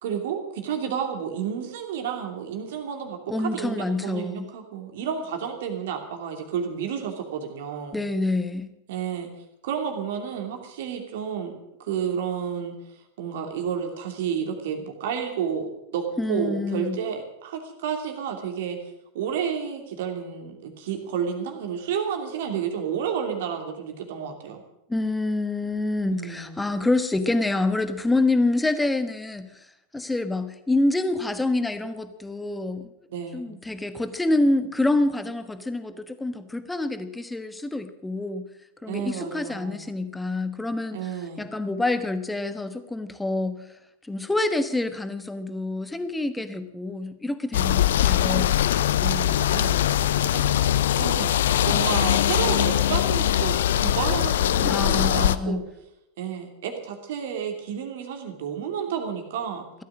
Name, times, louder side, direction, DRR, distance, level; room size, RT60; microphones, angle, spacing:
voice 1, 0.0-8.0 8.9-9.3 9.6-12.7 13.2-18.8 19.1-24.6 26.1-26.6 33.1-33.6 38.9-39.9 40.9-41.4 49.0-50.5 50.9-51.4 51.6-55.6 56.2-59.7, right 7 dB, 55° right, 4 dB, 2.8 m, -31 dB
voice 2, 3.3-4.5 7.9-8.7 16.2-17.0 24.9-29.5 29.9-32.9 33.3-38.4 38.8-41.1 41.4-43.7 44.0-48.6 54.6-55.6, left 2 dB, 5° left, 10 dB, 1.3 m, -27 dB
sound 1, 47.5-55.4, left 11 dB, 60° left, 0.6 m, -22 dB
16.5 x 13.0 x 6.3 m, 0.85 s
figure-of-eight pair, 90°, 0 cm